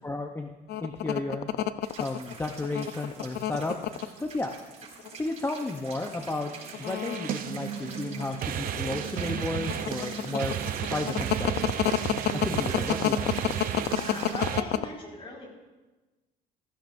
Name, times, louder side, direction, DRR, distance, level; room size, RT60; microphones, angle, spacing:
voice 1, 0.0-0.5 0.8-1.5 2.0-4.5 5.2-6.5 6.8-10.5 10.9-11.8 12.3-13.3, left 2 dB, 15° left, 4 dB, 0.7 m, -33 dB
sound 1, 0.7-4.1 4.8-5.3 5.6-5.8 6.6-8.3 8.7-14.8, left 13 dB, 70° left, 0.6 m, -28 dB
sound 2, 1.8-14.5, right 4 dB, 40° right, 5.1 m, -44 dB
sound 3, 6.2-14.6, right 9 dB, 55° right, 0.7 m, -33 dB
voice 2, 13.9-15.5, left 2 dB, 35° left, -2 dB, 4.9 m, -40 dB
15.5 x 15.0 x 2.6 m, 1.2 s
cardioid pair, 110°, 17 cm